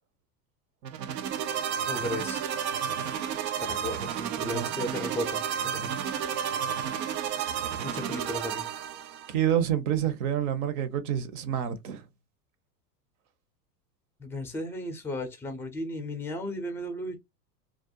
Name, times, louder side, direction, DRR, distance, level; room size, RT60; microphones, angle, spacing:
sound 1, 0.8-9.3, right 8 dB, 85° right, 0.6 m, -32 dB
voice 1, 1.9-2.4 3.6-5.4 5.7-6.0 7.8-8.7 14.2-17.2, left 1 dB, 5° left, 0.4 m, -35 dB
voice 2, 4.4-5.0 9.3-12.0, right 10 dB, 60° right, 0.8 m, -28 dB
2.5 x 2.0 x 2.7 m
hypercardioid pair, 105°, 50 cm